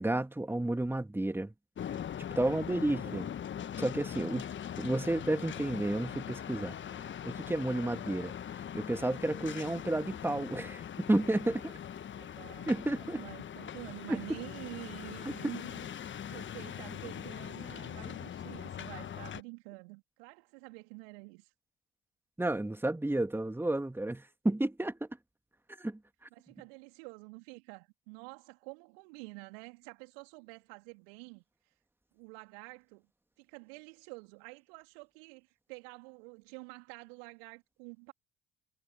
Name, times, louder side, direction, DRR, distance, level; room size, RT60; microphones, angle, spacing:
voice 1, 0.0-1.5 1.9-2.0 2.4-3.3 3.8-4.5 4.8-11.8 12.7-13.2 14.1-14.2 22.4-25.1 25.8-26.0, right 1 dB, 5° right, 2.3 m, -32 dB
sound 1, 1.8-19.4, left 9 dB, 35° left, 1.5 m, -41 dB
voice 2, 2.4-3.2 11.7-21.5 26.3-31.7 32.1-33.1 33.4-38.1, right 33 dB, 65° right, 3.3 m, -49 dB
figure-of-eight pair, 55°, 32 cm